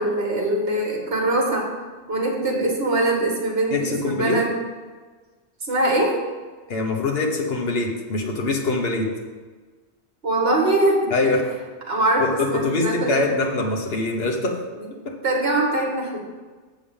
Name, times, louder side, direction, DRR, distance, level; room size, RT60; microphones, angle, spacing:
voice 1, 0.0-1.7 2.1-4.5 5.6-6.2 10.2-11.1 11.9-13.2 14.8-14.9 15.2-16.2, right 2 dB, 60° right, -1 dB, 2.0 m, -22 dB
voice 2, 3.7-4.4 6.7-9.1 11.1-11.4 12.2-14.6 15.0-15.1, left 3 dB, 60° left, 0 dB, 1.4 m, -23 dB
7.2 x 5.3 x 7.1 m, 1.4 s
omnidirectional pair, 1.2 m